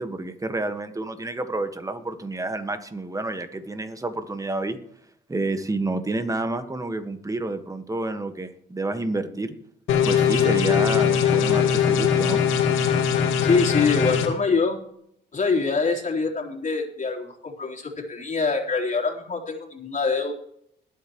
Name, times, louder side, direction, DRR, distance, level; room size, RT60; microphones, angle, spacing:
voice 1, 0.0-4.8 5.3-9.5 10.0-12.4, right 2 dB, 15° right, 8 dB, 1.6 m, -29 dB
sound 1, 9.9-14.3, left 8 dB, 90° left, 2.2 m, -21 dB
voice 2, 13.4-14.8 15.3-20.3, left 4 dB, 40° left, 0 dB, 3.7 m, -24 dB
21.5 x 8.6 x 3.1 m, 0.71 s
cardioid pair, 90°, 20 cm